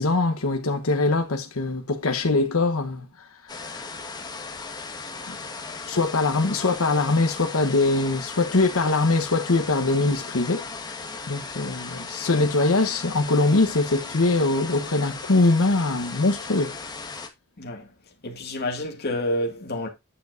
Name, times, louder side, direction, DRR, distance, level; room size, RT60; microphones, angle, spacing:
voice 1, 0.0-3.1 3.5-3.8 5.3-5.4 5.9-10.6 10.9-16.8, left 2 dB, 85° left, 1.0 m, -22 dB
sound 1, 3.5-17.3, left 4 dB, 20° left, 1.4 m, -37 dB
voice 2, 17.6-17.9 18.2-19.9, left 1 dB, 50° left, 2.0 m, -29 dB
9.0 x 6.9 x 2.6 m
head